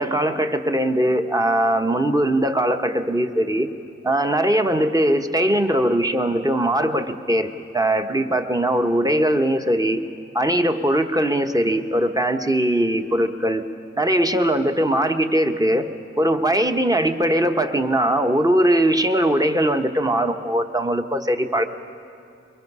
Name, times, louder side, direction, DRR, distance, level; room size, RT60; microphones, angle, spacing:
voice 1, 0.0-3.7 4.0-10.0 10.3-13.6 13.9-15.9 16.2-21.6, right 1 dB, 10° right, 6 dB, 1.2 m, -20 dB
23.0 x 22.5 x 5.6 m, 2.6 s
cardioid pair, 50°, 29 cm